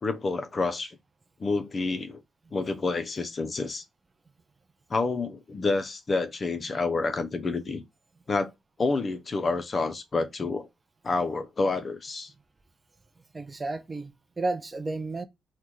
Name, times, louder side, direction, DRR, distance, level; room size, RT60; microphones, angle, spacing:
voice 1, 0.0-1.0 1.4-2.2 2.5-3.8 4.9-7.8 8.3-8.5 8.8-10.7 11.0-12.3, left 3 dB, 35° left, 0.4 m, -28 dB
voice 2, 13.3-15.2, right 3 dB, 25° right, 0.4 m, -32 dB
2.9 x 2.1 x 3.6 m
cardioid pair, 90°, 0 cm